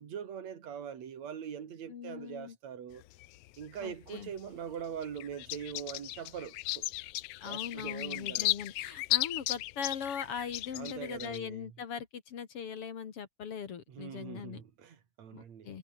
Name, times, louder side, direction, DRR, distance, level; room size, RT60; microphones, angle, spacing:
voice 1, 0.0-3.0 3.6-6.9 7.5-8.5 10.7-11.7 13.9-15.7, right 8 dB, 65° right, 3.5 m, -42 dB
voice 2, 1.9-2.6 3.8-4.3 7.4-14.6 15.3-15.8, left 7 dB, 55° left, 2.4 m, -40 dB
sound 1, 2.9-4.4 4.8-11.4, left 18 dB, 85° left, 1.4 m, -35 dB
omnidirectional pair, 3.4 m